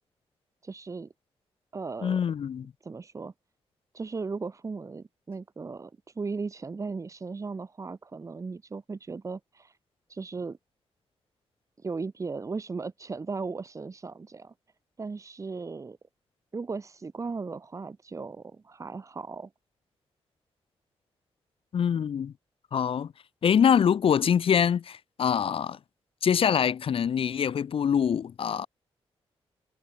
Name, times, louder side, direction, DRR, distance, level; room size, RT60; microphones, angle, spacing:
voice 1, 0.6-1.1 1.7-2.2 2.8-3.3 3.9-9.8 10.1-10.6 11.8-14.5 15.0-16.0 16.5-19.5, right 4 dB, 30° right, 4.9 m, -37 dB
voice 2, 2.0-2.7 21.7-22.3 22.7-23.1 23.4-25.8 26.2-28.7, left 8 dB, 60° left, 4.5 m, -24 dB
wide cardioid pair, 135°, 10 cm